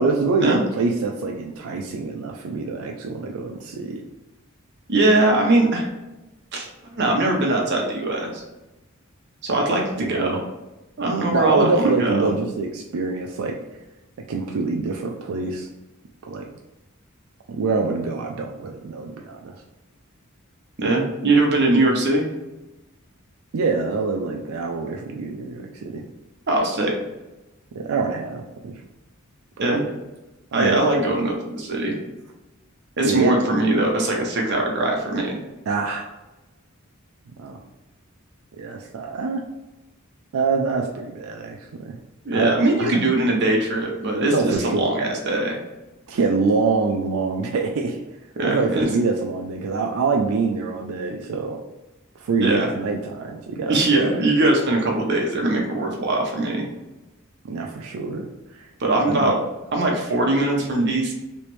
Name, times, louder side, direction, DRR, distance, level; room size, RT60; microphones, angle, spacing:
voice 1, 0.0-4.1 10.0-10.4 11.3-13.6 14.3-15.7 16.3-16.4 17.5-19.5 23.5-26.0 27.7-28.8 29.7-29.9 30.5-31.0 33.0-33.3 35.7-36.1 37.4-37.6 38.6-39.4 40.3-42.0 42.3-42.5 42.8-43.0 44.3-44.9 46.1-48.0 48.4-51.6 52.2-54.1 57.4-58.7 59.0-59.4, right 4 dB, 90° right, 1 dB, 0.4 m, -25 dB
voice 2, 4.9-5.9 6.5-8.4 9.4-10.4 11.0-12.3 20.8-22.2 26.5-26.9 29.6-29.8 30.5-31.9 33.0-35.4 42.2-45.6 48.4-48.9 52.4-52.7 53.7-56.6 58.8-59.4 59.7-61.1, right 2 dB, 55° right, 0 dB, 0.8 m, -21 dB
3.2 x 3.0 x 3.1 m, 1.0 s
head